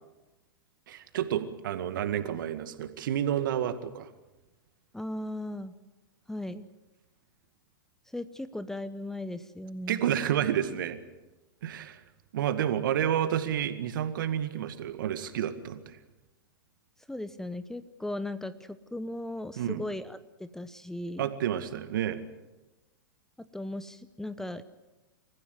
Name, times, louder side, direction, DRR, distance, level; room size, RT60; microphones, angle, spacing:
voice 1, 0.9-4.1 9.9-11.0 11.6-12.0 12.3-16.0 19.6-19.8 21.2-22.2, right 10 dB, 65° right, 10 dB, 2.1 m, -30 dB
voice 2, 4.9-5.7 6.3-6.7 8.1-10.0 17.1-21.3 23.5-24.6, left 1 dB, 5° left, 13 dB, 0.9 m, -37 dB
28.5 x 15.0 x 8.1 m, 1.1 s
hypercardioid pair, 105°, 12 cm